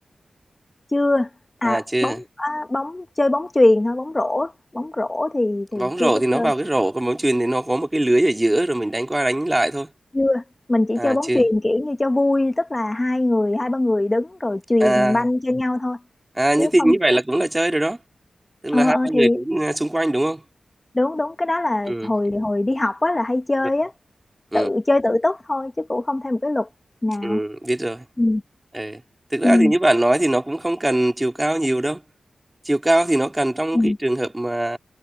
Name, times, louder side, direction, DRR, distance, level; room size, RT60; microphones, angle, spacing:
voice 1, 0.9-1.3 1.6-6.5 10.1-10.4 10.7-16.0 16.6-17.2 18.7-19.4 20.9-23.9 24.5-26.7 27.0-27.4 28.2-28.4 29.4-29.7 33.7-34.0, left 2 dB, 25° left, 1.5 m, -21 dB
voice 2, 1.6-2.2 5.8-9.9 11.0-11.4 14.8-15.3 16.3-18.0 18.6-20.4 21.9-22.1 24.5-24.7 27.2-28.0 28.7-29.0 29.3-32.0 32.6-34.8, right 1 dB, 15° right, 2.7 m, -21 dB
wide cardioid pair, 75°, 0 cm